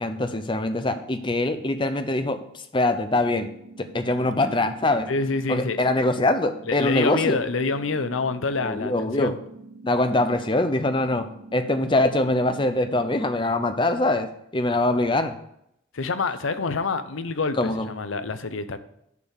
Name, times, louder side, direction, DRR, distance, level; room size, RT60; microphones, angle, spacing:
voice 1, 0.0-3.5 3.8-5.1 5.5-7.4 8.6-9.3 9.8-11.3 11.5-15.3 17.6-17.9, left 2 dB, 25° left, 8 dB, 0.7 m, -23 dB
sound 1, 3.3-13.3, right 3 dB, 65° right, 0.9 m, -45 dB
voice 2, 5.1-5.9 6.7-9.4 15.9-18.8, left 4 dB, 90° left, 11 dB, 0.7 m, -27 dB
8.2 x 4.6 x 7.1 m, 0.75 s
head